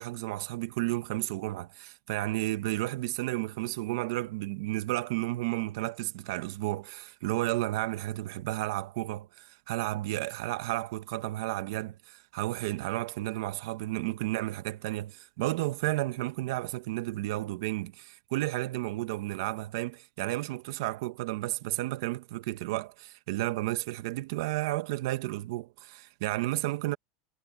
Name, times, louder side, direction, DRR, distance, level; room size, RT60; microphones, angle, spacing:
voice 1, 0.0-27.0, right 17 dB, 60° right, 1.3 m, -32 dB
supercardioid pair, 180°, 2 cm